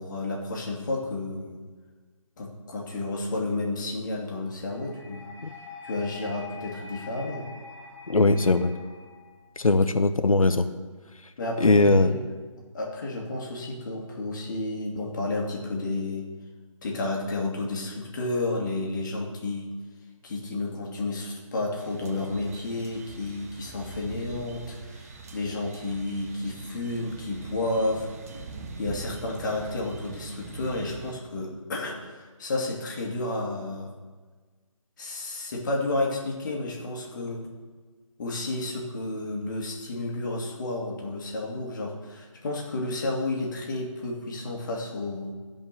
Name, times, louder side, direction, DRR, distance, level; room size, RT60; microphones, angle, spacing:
voice 1, 0.0-1.6 2.4-5.3 5.8-7.5 11.4-12.3 12.7-16.3 16.8-19.7 20.2-28.1 28.8-33.9 35.0-37.5 38.2-45.3, left 2 dB, 35° left, -1 dB, 2.2 m, -31 dB
sound 1, 4.7-9.7, left 4 dB, 5° left, 0.9 m, -45 dB
voice 2, 8.1-8.7 9.6-10.7 11.6-12.2, left 2 dB, 85° left, 9 dB, 0.9 m, -20 dB
sound 2, 21.8-31.1, right 4 dB, 30° right, 0.8 m, -42 dB
16.0 x 5.4 x 6.6 m, 1.4 s
figure-of-eight pair, 160°, 17 cm